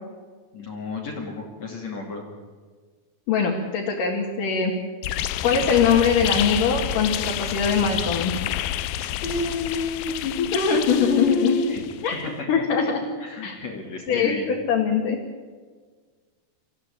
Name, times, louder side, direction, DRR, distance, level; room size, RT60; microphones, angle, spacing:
voice 1, 0.5-2.3 9.0-10.1 11.0-11.8 13.2-14.5, left 3 dB, 50° left, 0 dB, 3.6 m, -30 dB
voice 2, 3.3-4.7 5.4-8.3 10.2-11.5 12.0-13.0 13.4-13.6 14.1-15.2, left 6 dB, 65° left, -2 dB, 3.7 m, -22 dB
sound 1, 5.0-12.1, left 13 dB, 85° left, 2.6 m, -29 dB
24.5 x 15.0 x 8.6 m, 1.5 s
omnidirectional pair, 4.1 m